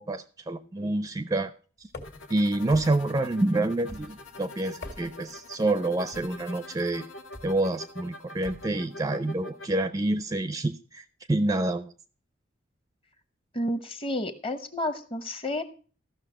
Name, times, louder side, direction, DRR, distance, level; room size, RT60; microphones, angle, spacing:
voice 1, 0.0-1.5 2.3-7.0 7.4-11.9, right 2 dB, 20° right, 13 dB, 0.4 m, -27 dB
sound 1, 1.9-2.3 2.7-3.2 3.9-4.3 4.7-5.3 6.1-6.5 7.3-7.6 8.4-8.8, left 2 dB, 50° left, 1.8 m, -43 dB
sound 2, 2.0-9.7, left 2 dB, 80° left, 1.8 m, -44 dB
voice 2, 13.5-15.6, left 1 dB, 25° left, 11 dB, 0.9 m, -31 dB
14.5 x 6.3 x 4.9 m, 0.39 s
head